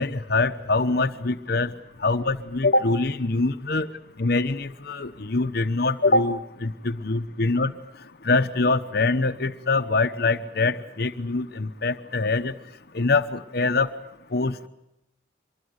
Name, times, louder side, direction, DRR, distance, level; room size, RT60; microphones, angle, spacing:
voice 1, 0.0-1.7 2.0-3.9 4.2-7.7 8.2-12.5 12.9-13.9 14.3-14.7, left 3 dB, 55° left, 9 dB, 1.0 m, -24 dB
25.0 x 21.5 x 8.1 m, 0.86 s
head